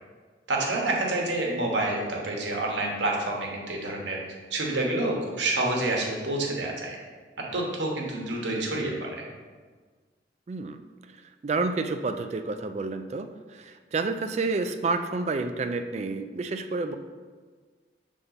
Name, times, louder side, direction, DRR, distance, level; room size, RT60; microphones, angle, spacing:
voice 1, 0.5-4.2 4.5-7.0 7.5-9.1, right 2 dB, 80° right, -1 dB, 1.1 m, -28 dB
voice 2, 10.5-10.8 11.4-17.0, right 3 dB, 35° right, 8 dB, 0.3 m, -29 dB
6.7 x 3.6 x 3.9 m, 1.5 s
head